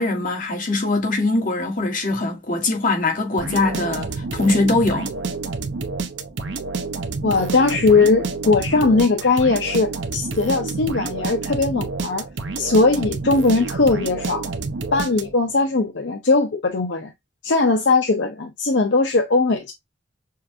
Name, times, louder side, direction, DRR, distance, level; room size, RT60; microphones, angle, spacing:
voice 1, 0.0-5.1, left 2 dB, 45° left, 1.6 m, -22 dB
sound 1, 3.4-15.6, right 3 dB, 85° right, 0.8 m, -29 dB
voice 2, 7.2-12.2 12.6-14.4 14.9-17.1 17.4-19.7, left 3 dB, 70° left, 0.7 m, -19 dB
6.5 x 2.4 x 2.7 m
head